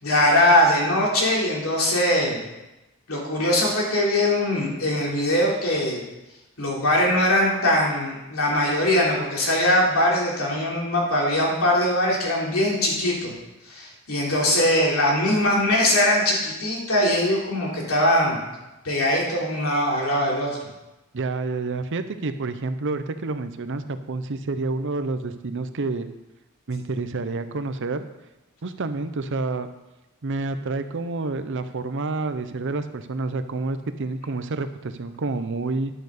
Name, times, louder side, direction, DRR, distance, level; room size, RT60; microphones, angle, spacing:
voice 1, 0.0-2.4 3.1-6.0 6.6-13.3 13.7-18.4 18.8-20.6, left 1 dB, 70° left, -3 dB, 3.5 m, -21 dB
voice 2, 21.1-26.1 26.7-28.0 28.6-29.7 30.2-35.9, right 3 dB, 55° right, 10 dB, 0.7 m, -28 dB
10.5 x 6.7 x 6.6 m, 1.0 s
head